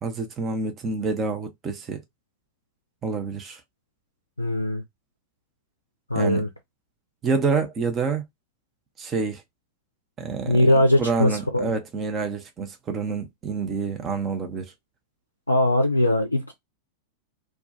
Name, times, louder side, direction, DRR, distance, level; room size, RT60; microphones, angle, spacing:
voice 1, 0.0-2.0 3.0-3.6 6.1-6.4 7.2-8.2 9.0-9.4 10.2-14.7, right 4 dB, 25° right, 0.6 m, -27 dB
voice 2, 4.4-4.8 6.1-6.5 10.5-11.7 15.5-16.5, left 1 dB, 85° left, 0.4 m, -21 dB
2.2 x 2.2 x 2.6 m
figure-of-eight pair, 90°, 0 cm